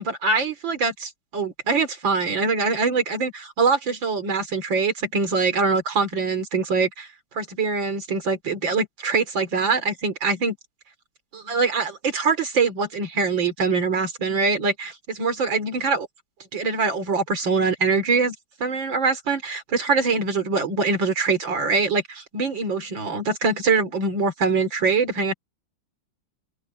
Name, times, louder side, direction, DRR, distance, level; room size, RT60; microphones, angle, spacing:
voice 1, 0.0-7.1 7.3-10.6 11.3-16.1 16.5-25.3, right 4 dB, 75° right, 3.7 m, -23 dB
omnidirectional pair, 2.1 m